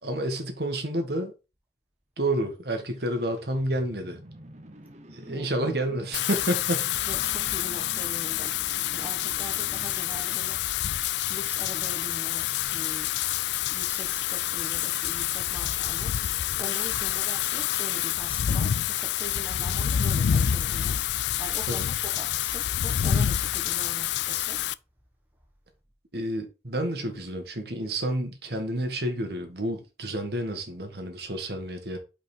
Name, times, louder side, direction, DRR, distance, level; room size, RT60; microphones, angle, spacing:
voice 1, 0.0-1.3 2.2-4.2 5.1-6.8 19.6-19.8 21.7-21.9 26.1-32.0, right 1 dB, 60° right, 1.6 m, -30 dB
sound 1, 2.8-10.9, right 1 dB, 40° right, 1.0 m, -48 dB
Wind / Rain, 6.1-24.7, left 10 dB, 70° left, 0.3 m, -27 dB
voice 2, 7.1-8.5 8.9-10.6 11.3-13.1 13.7-16.2 16.6-21.0 21.4-24.6, left 1 dB, 10° right, 1.3 m, -42 dB
5.5 x 5.2 x 4.5 m
head